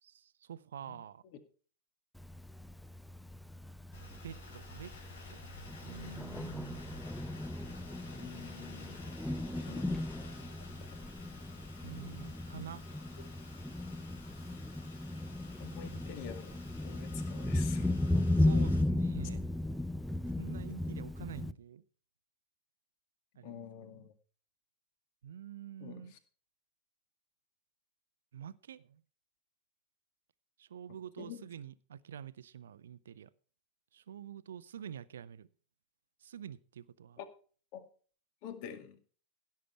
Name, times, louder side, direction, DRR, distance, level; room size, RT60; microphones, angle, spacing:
voice 1, 0.0-1.2 4.2-4.9 5.3-5.4 5.8-6.8 9.6-9.8 11.8-12.8 18.4-19.5 20.4-21.8 23.4-23.7 25.2-26.1 28.3-29.0 30.6-33.3 33.9-35.5 36.2-37.2, right 9 dB, 65° right, 0.6 m, -47 dB
Thunder, 2.2-21.5, left 1 dB, ahead, 0.6 m, -36 dB
sound 1, 3.9-18.8, left 2 dB, 65° left, 4.2 m, -53 dB
voice 2, 8.1-9.2 9.6-10.3 15.6-16.6 16.8-17.9 23.4-24.1 25.8-26.2 31.2-31.5 37.2-37.3 37.7-37.9 38.4-39.0, left 8 dB, 45° left, 2.1 m, -47 dB
16.5 x 7.5 x 4.5 m
figure-of-eight pair, 90°, 0 cm